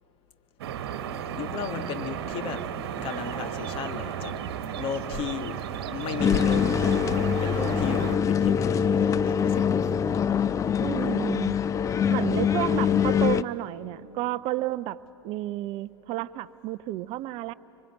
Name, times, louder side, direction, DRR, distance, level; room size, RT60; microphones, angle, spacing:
sound 1, 0.6-8.2, right 8 dB, 60° right, 1.4 m, -34 dB
voice 1, 1.4-2.7 3.0-4.4 4.7-5.6 5.9-7.1 7.4-9.8, left 7 dB, 40° left, 9 dB, 1.4 m, -34 dB
sound 2, 6.2-13.4, left 8 dB, 20° left, 0.5 m, -24 dB
voice 2, 10.8-11.6 12.1-15.0 15.2-17.5, right 16 dB, 40° right, 17 dB, 0.5 m, -31 dB
25.5 x 24.0 x 8.8 m, 3.0 s
figure-of-eight pair, 85°, 14 cm